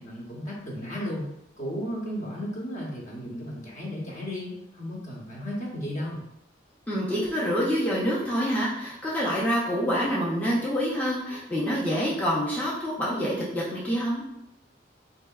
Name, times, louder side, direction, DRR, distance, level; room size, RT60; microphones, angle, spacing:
voice 1, 0.0-1.3 1.6-6.2, equal, 40° left, -3 dB, 0.8 m, -34 dB
voice 2, 6.9-14.2, equal, 10° left, -7 dB, 0.5 m, -27 dB
4.1 x 2.7 x 2.3 m, 0.83 s
head